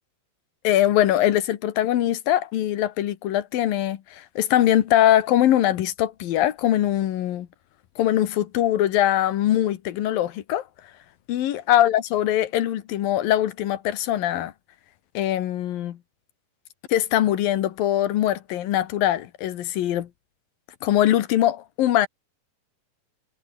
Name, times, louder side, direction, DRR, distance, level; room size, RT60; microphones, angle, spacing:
voice 1, 0.6-7.5 8.0-10.6 11.3-14.5 15.1-16.0 16.9-20.1 20.8-22.1, left 12 dB, 85° left, 3.2 m, -22 dB
omnidirectional pair, 4.0 m